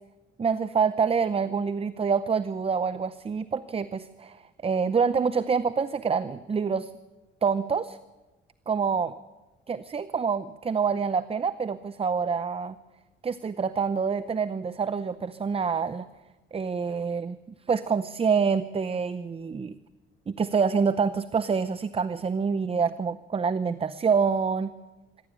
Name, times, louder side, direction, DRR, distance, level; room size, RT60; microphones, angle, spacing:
voice 1, 0.4-6.9 7.4-8.0 8.7-9.1 9.7-12.7 13.2-16.1 16.5-17.4 17.7-19.7 20.3-24.7, right 5 dB, 30° right, 14 dB, 0.7 m, -26 dB
26.5 x 12.0 x 8.8 m, 1.1 s
cardioid pair, 90°, 20 cm